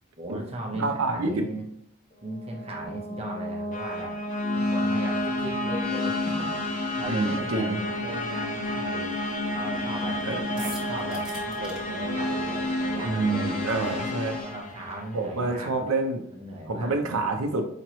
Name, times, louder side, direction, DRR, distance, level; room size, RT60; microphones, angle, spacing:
voice 1, 0.2-1.7 2.2-4.2 4.5-6.5 7.0-9.1 9.5-13.8 14.4-15.8 16.3-17.4, right 1 dB, 30° right, -1 dB, 0.9 m, -38 dB
voice 2, 0.7-1.6 7.1-7.8 10.2-10.4 13.0-14.4 15.1-16.2 16.7-17.6, right 3 dB, 75° right, 5 dB, 0.6 m, -27 dB
sound 1, 2.3-15.3, left 1 dB, 35° left, 0.5 m, -31 dB
sound 2, 4.3-14.5, left 2 dB, 85° left, 1.0 m, -34 dB
sound 3, 10.6-11.8, right 2 dB, 5° right, 1.1 m, -40 dB
5.0 x 3.1 x 3.0 m, 0.70 s
head